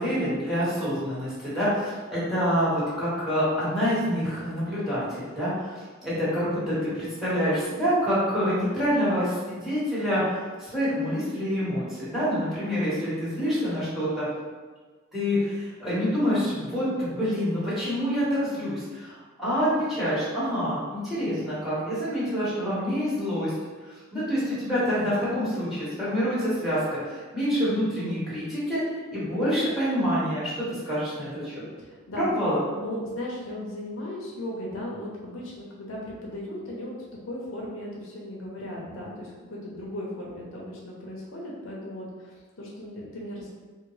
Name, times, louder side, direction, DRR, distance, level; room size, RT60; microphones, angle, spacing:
voice 1, 0.0-10.2 10.6-14.3 15.1-23.5 24.1-28.8 29.1-31.6 32.1-32.6, equal, ahead, -11 dB, 1.4 m, -27 dB
voice 2, 31.8-32.3 32.8-37.0 37.2-43.5, left 1 dB, 70° left, -4 dB, 0.7 m, -37 dB
3.6 x 2.2 x 3.1 m, 1.4 s
head